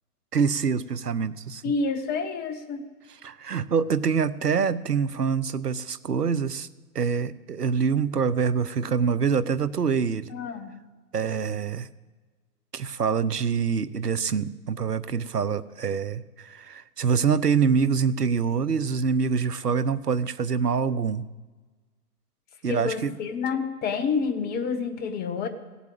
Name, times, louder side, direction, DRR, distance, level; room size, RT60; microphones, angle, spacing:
voice 1, 0.3-1.7 3.2-6.7 6.9-10.3 11.1-11.9 12.7-21.3 22.6-23.2, right 6 dB, 90° right, 17 dB, 0.8 m, -25 dB
voice 2, 1.6-2.9 10.3-10.7 22.7-25.5, left 5 dB, 20° left, 9 dB, 1.1 m, -28 dB
16.5 x 8.2 x 7.8 m, 1.3 s
figure-of-eight pair, 115°, 46 cm